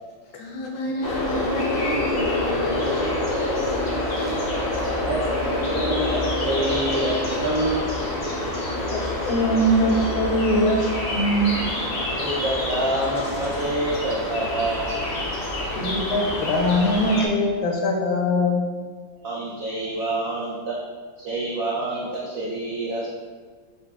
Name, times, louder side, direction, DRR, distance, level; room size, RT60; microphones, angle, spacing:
voice 1, 0.3-3.2 4.1-4.9, left 1 dB, 70° left, 0 dB, 1.2 m, -32 dB
sound 1, 1.0-17.3, left 1 dB, 55° left, 0.8 m, -26 dB
voice 2, 3.8-4.4 5.1-5.2 5.6-7.9 12.2-14.9 19.2-20.8 21.2-23.1, right 1 dB, 80° right, -4 dB, 0.7 m, -27 dB
voice 3, 8.9-11.5 15.7-18.6, equal, 85° left, 0 dB, 1.5 m, -22 dB
4.9 x 4.0 x 2.3 m, 1.5 s
omnidirectional pair, 2.1 m